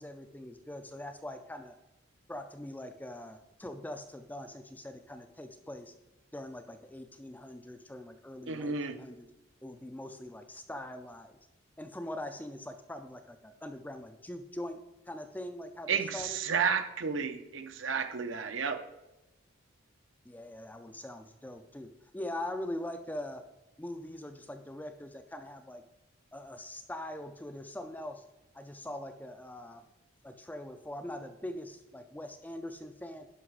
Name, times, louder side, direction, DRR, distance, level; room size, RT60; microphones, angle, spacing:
voice 1, 0.0-1.8 2.3-5.9 6.3-9.3 9.6-11.4 11.8-16.4 20.3-23.4 23.8-25.8 26.3-28.2 28.5-29.8 30.2-33.3, left 1 dB, 10° left, 7 dB, 0.4 m, -42 dB
voice 2, 8.5-8.9 15.9-18.8, right 6 dB, 65° right, 7 dB, 0.7 m, -32 dB
11.0 x 5.7 x 4.8 m, 0.96 s
head